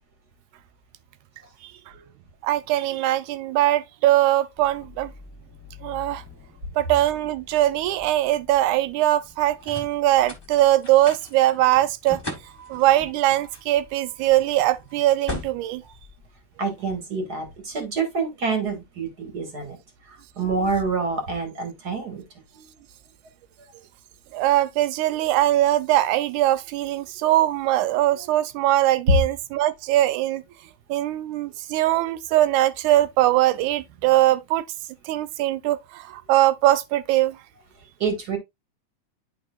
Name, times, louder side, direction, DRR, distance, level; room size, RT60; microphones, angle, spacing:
voice 1, 2.4-5.1 5.8-6.2 6.8-12.2 12.7-15.8 24.3-30.4 30.9-34.6 35.1-37.4, right 14 dB, 80° right, 2.0 m, -21 dB
sound 1, 4.6-16.9, left 2 dB, 30° left, 0.4 m, -41 dB
voice 2, 16.6-19.8 20.4-22.2 22.6-22.7 38.0-38.4, right 4 dB, 35° right, 1.9 m, -27 dB
11.0 x 4.6 x 2.3 m
omnidirectional pair, 3.6 m